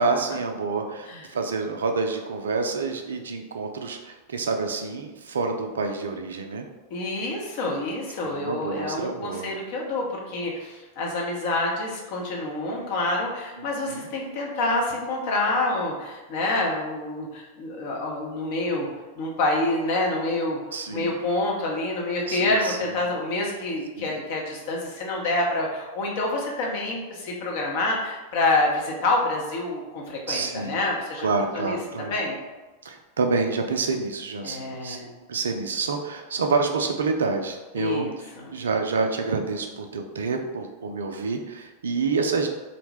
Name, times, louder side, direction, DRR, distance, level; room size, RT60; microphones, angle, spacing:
voice 1, 0.0-6.6 8.2-9.5 13.6-14.1 20.7-21.2 22.3-23.0 24.0-24.2 30.3-30.8 31.2-32.1 32.8-35.0 35.3-42.5, right 4 dB, 65° right, 4 dB, 0.3 m, -28 dB
voice 2, 6.9-18.9 19.2-20.6 20.9-31.3 31.5-32.4 34.4-35.1 37.8-38.1 38.4-38.5, left 2 dB, 50° left, -1 dB, 0.7 m, -27 dB
2.6 x 2.1 x 3.2 m, 1.2 s
figure-of-eight pair, 90°, 0 cm